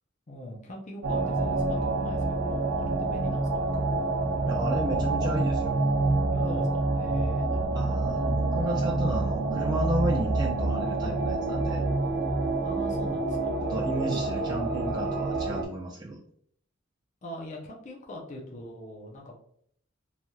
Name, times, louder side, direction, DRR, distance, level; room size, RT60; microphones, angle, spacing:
voice 1, 0.3-3.9 6.3-8.4 12.6-13.6 14.0-14.3 17.2-19.4, left 1 dB, 40° left, -1 dB, 0.5 m, -42 dB
sound 1, 1.0-15.6, right 2 dB, 80° right, 0.7 m, -27 dB
voice 2, 4.4-5.8 7.7-11.8 13.6-16.2, right 1 dB, 20° right, -3 dB, 0.3 m, -33 dB
3.2 x 2.7 x 2.3 m, 0.64 s
head